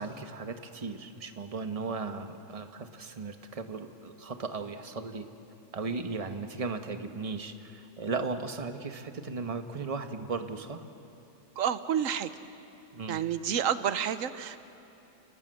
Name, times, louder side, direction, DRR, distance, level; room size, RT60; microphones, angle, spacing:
voice 1, 0.0-5.3 5.7-10.8 12.9-13.2, right 4 dB, 25° right, 7 dB, 1.0 m, -36 dB
voice 2, 11.6-12.3 13.1-14.6, right 9 dB, 60° right, 13 dB, 1.1 m, -29 dB
29.0 x 19.5 x 7.7 m, 2.9 s
omnidirectional pair, 1.7 m